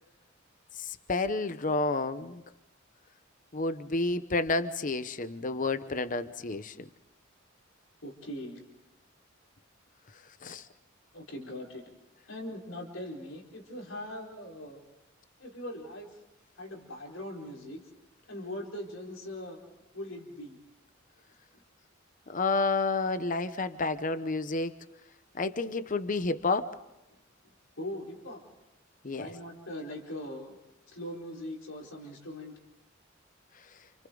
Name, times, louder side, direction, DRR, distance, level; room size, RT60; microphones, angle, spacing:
voice 1, 0.7-2.4 3.5-6.9 10.4-10.7 22.3-24.8 25.3-26.8 29.0-29.3, left 3 dB, 40° left, 12 dB, 0.9 m, -30 dB
voice 2, 8.0-8.6 11.1-11.8 12.3-14.8 15.4-16.1 16.5-17.8 18.3-19.6 19.9-20.6 27.8-28.4 29.1-30.6 30.9-32.5, left 1 dB, 80° left, 1 dB, 4.5 m, -41 dB
29.5 x 29.0 x 3.9 m, 0.94 s
head